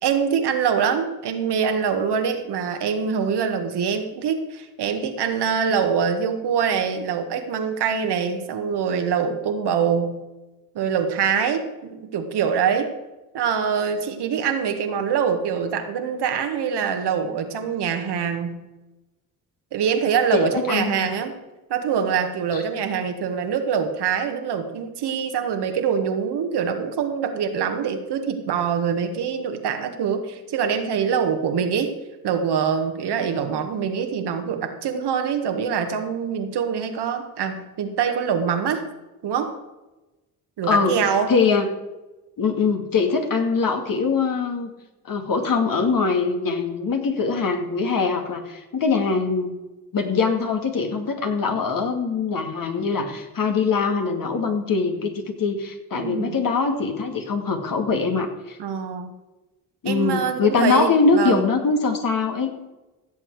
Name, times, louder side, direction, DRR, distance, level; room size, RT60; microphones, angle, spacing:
voice 1, 0.0-10.2 10.7-12.9 13.3-18.6 19.7-21.3 21.7-31.9 32.2-38.8 39.2-39.6 40.6-41.3 55.9-56.4 58.6-59.1 59.8-61.4, right 7 dB, 65° right, 6 dB, 1.8 m, -24 dB
voice 2, 20.3-21.1 22.5-22.6 40.7-41.0 41.3-41.7 42.4-44.7 45.1-49.5 49.9-58.6 59.8-62.6, left 4 dB, 50° left, 4 dB, 2.3 m, -22 dB
16.0 x 7.6 x 4.8 m, 1.1 s
hypercardioid pair, 50°, 44 cm